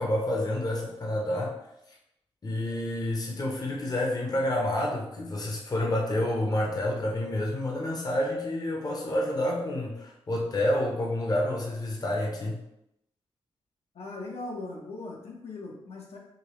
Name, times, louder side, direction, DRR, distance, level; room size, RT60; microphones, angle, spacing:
voice 1, 0.0-1.5 2.4-12.6, left 1 dB, 35° left, -1 dB, 0.7 m, -29 dB
voice 2, 13.9-16.2, left 2 dB, 75° left, -2 dB, 0.9 m, -39 dB
5.1 x 2.0 x 3.0 m, 0.83 s
cardioid pair, 85°, 11 cm